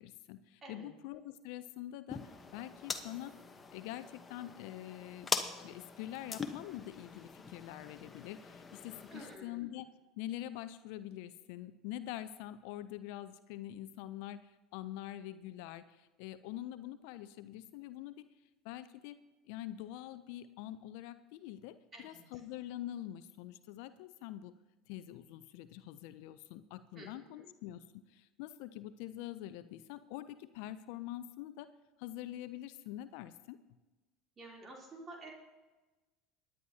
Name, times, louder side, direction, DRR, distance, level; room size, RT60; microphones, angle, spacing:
voice 1, 0.0-2.2 2.5-3.3 3.7-5.3 5.6-9.9 10.2-18.3 18.6-19.2 19.5-24.5 24.9-31.7 32.0-33.6, left 13 dB, 70° left, 13 dB, 0.5 m, -45 dB
sound 1, 2.1-9.4, left 4 dB, 25° left, 1.0 m, -42 dB
voice 2, 9.1-9.6 21.9-22.2 27.0-27.1 27.4-27.5 34.4-35.3, right 2 dB, 35° right, -2 dB, 3.1 m, -50 dB
22.5 x 9.9 x 2.8 m, 1.2 s
hypercardioid pair, 80°, 0 cm